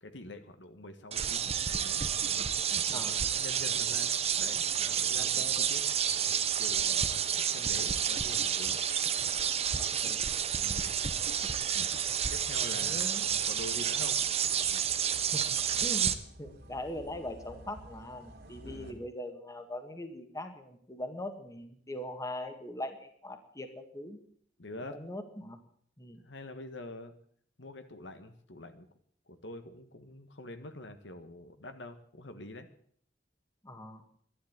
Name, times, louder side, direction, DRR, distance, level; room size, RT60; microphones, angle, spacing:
voice 1, 0.0-2.4 2.9-5.8 6.6-8.8 10.6-10.9 12.3-14.2 14.7-14.8 18.6-19.0 24.6-25.0 26.2-27.1 27.6-28.9 29.3-32.7, left 1 dB, 75° left, 8 dB, 1.5 m, -46 dB
sound 1, 1.1-16.1, right 8 dB, 35° right, 0.8 m, -30 dB
voice 2, 5.2-5.6 9.8-10.2 10.8-10.9 12.8-13.2 15.3-24.2 24.9-25.6 26.0-26.2 33.6-34.0, left 1 dB, 20° left, 6 dB, 1.7 m, -41 dB
sound 2, 10.5-18.9, equal, 60° right, 3.0 m, -53 dB
12.0 x 11.5 x 8.8 m, 0.62 s
head